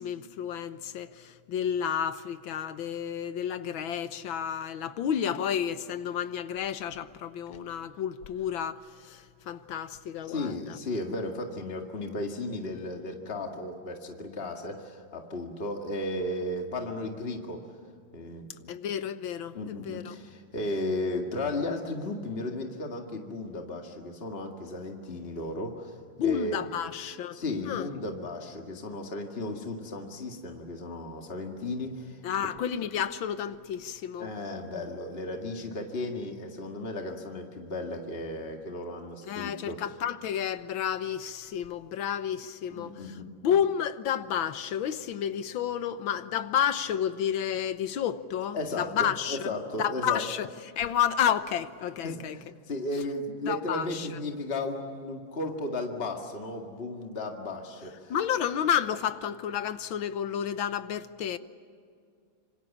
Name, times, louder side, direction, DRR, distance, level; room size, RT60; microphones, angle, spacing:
voice 1, 0.0-10.8 18.7-20.2 26.2-27.9 32.2-34.3 39.3-42.9 43.4-49.5 49.8-50.5 50.8-52.4 53.5-54.1 58.1-61.4, left 9 dB, 80° left, 1.8 m, -31 dB
voice 2, 10.2-17.6 18.1-18.7 19.5-26.0 26.2-26.6 27.3-32.2 34.2-39.9 42.7-43.3 48.5-50.3 52.0-58.1, left 2 dB, 30° left, 2.2 m, -35 dB
27.0 x 25.5 x 7.3 m
omnidirectional pair, 2.1 m